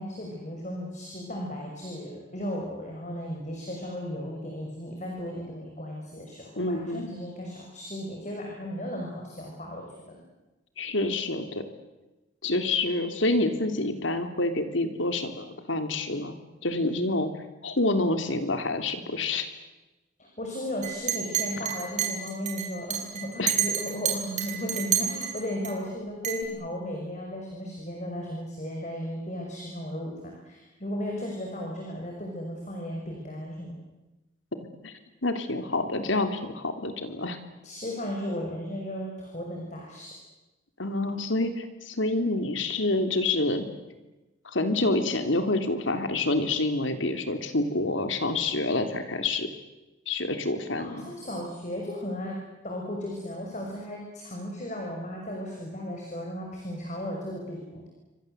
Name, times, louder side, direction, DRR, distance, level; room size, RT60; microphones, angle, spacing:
voice 1, 0.0-10.2 20.2-33.7 37.6-40.1 50.8-52.4 52.6-57.9, equal, 40° left, 0 dB, 6.2 m, -35 dB
voice 2, 6.6-7.1 10.8-11.6 12.4-16.3 16.6-17.3 17.6-19.5 23.4-23.6 34.8-34.9 35.2-37.4 40.8-43.7 44.4-49.5 50.1-51.1, left 2 dB, 80° left, 8 dB, 3.2 m, -27 dB
Chink clink, 20.8-25.7 26.2-26.4, right 9 dB, 35° right, 6.2 m, -28 dB
29.5 x 24.5 x 8.1 m, 1.1 s
head